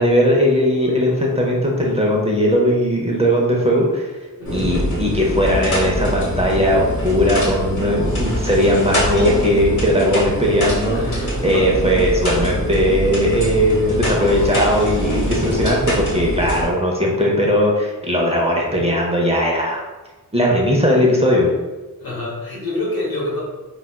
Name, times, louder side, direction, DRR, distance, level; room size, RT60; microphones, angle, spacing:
voice 1, 0.0-4.1 4.5-19.8 20.3-21.5, equal, 15° right, -2 dB, 0.6 m, -18 dB
voice 2, 4.4-4.8 10.9-11.7 22.0-23.4, left 2 dB, 80° left, -5 dB, 1.2 m, -27 dB
sound 1, 4.5-16.7, equal, 55° left, 1.0 m, -23 dB
4.0 x 2.3 x 2.2 m, 1.2 s
wide cardioid pair, 95°, 36 cm